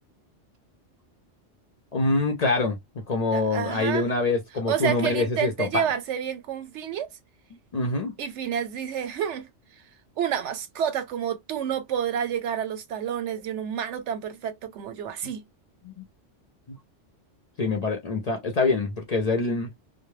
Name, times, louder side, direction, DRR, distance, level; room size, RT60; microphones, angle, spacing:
voice 1, 1.9-2.8 3.1-5.8 7.7-8.1 15.9-16.0 17.6-19.7, left 3 dB, 50° left, 0.5 m, -25 dB
voice 2, 3.3-4.1 4.7-7.1 8.2-9.5 10.2-15.5, right 9 dB, 90° right, 0.9 m, -29 dB
2.2 x 2.0 x 3.0 m
omnidirectional pair, 1.2 m